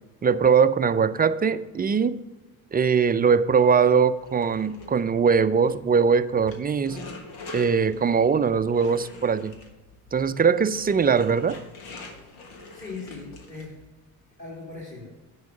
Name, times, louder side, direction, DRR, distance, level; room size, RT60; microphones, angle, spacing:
voice 1, 0.2-2.2 2.7-7.0 7.5-9.6 10.1-11.6, right 6 dB, 25° right, 13 dB, 0.4 m, -21 dB
sound 1, 4.2-13.9, left 3 dB, 85° left, 1.4 m, -44 dB
voice 2, 12.7-13.8 14.4-15.1, left 3 dB, 25° left, -4 dB, 3.0 m, -39 dB
9.4 x 4.7 x 6.6 m, 1.2 s
hypercardioid pair, 65°, 42 cm